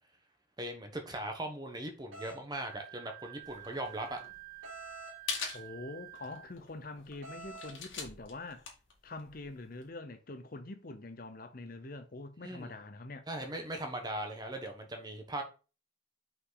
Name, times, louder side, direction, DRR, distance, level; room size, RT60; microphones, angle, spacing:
voice 1, 0.6-4.2 12.4-12.7 13.3-15.4, right 1 dB, 20° right, 1.2 m, -39 dB
sound 1, 2.1-2.4 4.6-5.2 7.2-7.8, right 2 dB, 90° right, 2.7 m, -47 dB
Wind instrument woodwind instrument, 2.7-6.5, right 19 dB, 5° left, 0.9 m, -50 dB
sound 2, 3.4-9.9, left 5 dB, 80° left, 2.0 m, -44 dB
voice 2, 5.5-8.6 9.0-13.2, left 2 dB, 45° left, 0.8 m, -45 dB
5.8 x 5.3 x 4.0 m
head